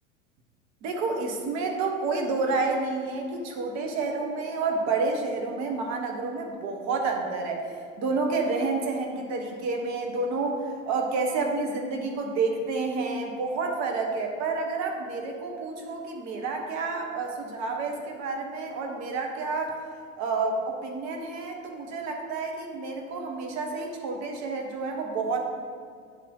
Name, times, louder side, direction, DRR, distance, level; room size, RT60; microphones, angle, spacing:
voice 1, 0.8-19.8 20.2-25.4, right 3 dB, 45° right, 2 dB, 1.2 m, -29 dB
9.2 x 4.2 x 3.9 m, 2.1 s
figure-of-eight pair, 75°, 38 cm